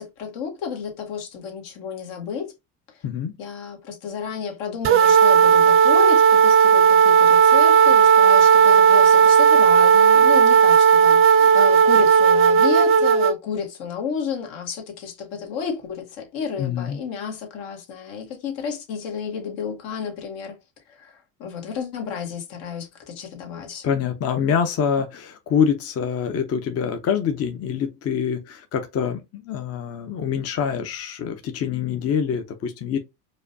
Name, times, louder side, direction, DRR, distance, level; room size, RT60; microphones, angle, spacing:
voice 1, 0.0-2.5 2.9-3.0 3.4-20.6 20.9-24.0, left 6 dB, 75° left, 1.5 m, -31 dB
sound 1, 4.8-13.3, right 7 dB, 30° right, 0.5 m, -14 dB
voice 2, 16.6-17.0 23.8-33.0, left 7 dB, 35° left, 0.7 m, -25 dB
4.8 x 2.2 x 2.7 m
supercardioid pair, 90°, 43 cm